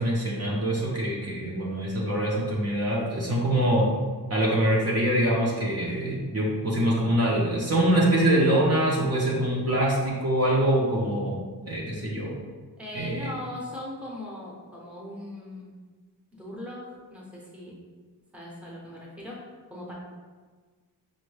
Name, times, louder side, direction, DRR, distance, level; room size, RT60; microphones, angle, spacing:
voice 1, 0.0-3.9 4.3-11.4 11.7-12.3 12.9-13.3, right 1 dB, 40° right, -4 dB, 0.6 m, -24 dB
voice 2, 12.8-15.7 16.3-17.7 18.3-19.4 19.7-19.9, left 1 dB, 5° right, -4 dB, 0.7 m, -39 dB
5.2 x 2.1 x 3.1 m, 1.5 s
wide cardioid pair, 145°, 40 cm